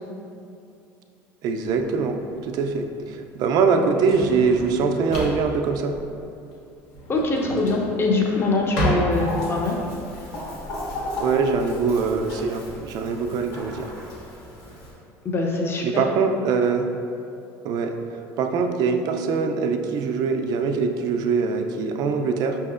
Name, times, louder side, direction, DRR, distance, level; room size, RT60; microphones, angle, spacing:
voice 1, 1.4-6.0 11.2-13.9 15.8-16.9 17.6-18.0 18.4-22.6, right 5 dB, 60° right, 5 dB, 0.3 m, -23 dB
Drawer open or close, 1.6-11.2, equal, 75° left, 0.8 m, -32 dB
voice 2, 7.1-9.8 15.2-16.0, left 3 dB, 30° left, 0 dB, 0.6 m, -23 dB
Chicken rooster, 9.1-14.9, left 1 dB, 60° left, 1.4 m, -35 dB
5.2 x 2.8 x 2.4 m, 2.6 s
supercardioid pair, 90°, 7 cm